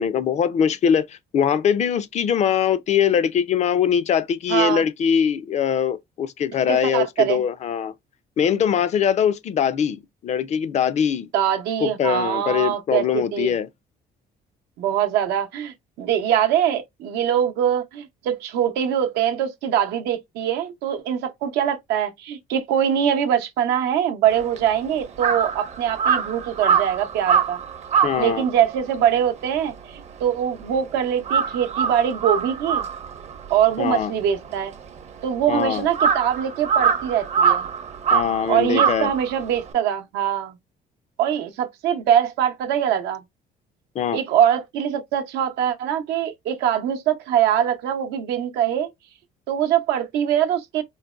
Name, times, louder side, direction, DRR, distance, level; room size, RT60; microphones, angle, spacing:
voice 1, 0.0-7.9 8.4-11.3 11.8-13.7 28.0-28.5 33.8-34.1 35.5-35.8 38.1-39.1 44.0-44.2, left 8 dB, 40° left, 0.4 m, -22 dB
voice 2, 4.5-4.8 6.7-7.4 11.3-13.5 14.8-27.6 28.2-32.9 33.5-34.7 35.2-37.7 38.5-40.6 41.2-43.2 44.1-48.9 49.5-50.8, right 9 dB, 85° right, 0.7 m, -23 dB
Crow, 24.3-30.8 31.1-39.7, right 7 dB, 40° right, 0.6 m, -24 dB
3.9 x 2.1 x 2.3 m
cardioid pair, 110°, 17 cm